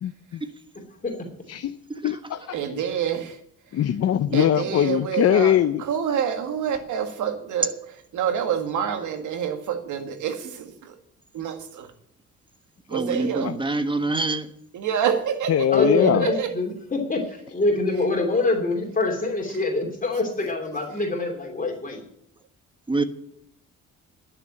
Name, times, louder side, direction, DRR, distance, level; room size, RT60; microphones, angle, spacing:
voice 1, 0.0-0.4 1.5-1.8 2.0-2.6 3.7-5.8 13.4-13.6 15.5-16.3, left 10 dB, 55° left, 0.7 m, -22 dB
voice 2, 2.5-3.4 4.3-5.5 5.9-7.7 8.1-11.0 11.3-11.9 12.9-13.5 14.7-16.5, right 8 dB, 75° right, 1.9 m, -27 dB
voice 3, 12.9-14.5 22.9-23.0, right 2 dB, 15° right, 1.2 m, -26 dB
voice 4, 15.7-22.0, left 2 dB, 25° left, 2.9 m, -25 dB
11.5 x 6.8 x 8.7 m
cardioid pair, 90°, 30 cm